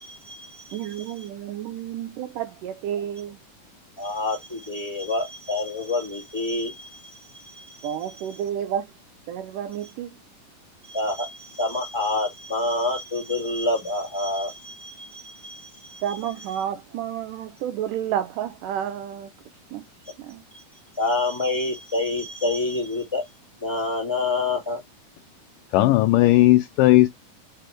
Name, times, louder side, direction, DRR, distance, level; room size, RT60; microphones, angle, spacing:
voice 1, 0.0-1.3 4.0-8.4 9.8-9.9 10.8-16.6 20.5-20.6 20.9-23.2 23.6-24.8, left 2 dB, 10° left, 1.5 m, -28 dB
voice 2, 0.7-3.4 7.8-8.9 9.3-10.1 16.0-19.3 19.7-19.8 20.2-20.4, right 10 dB, 75° right, 2.0 m, -30 dB
voice 3, 25.7-27.1, left 16 dB, 85° left, 1.9 m, -16 dB
5.0 x 4.9 x 4.5 m
omnidirectional pair, 4.3 m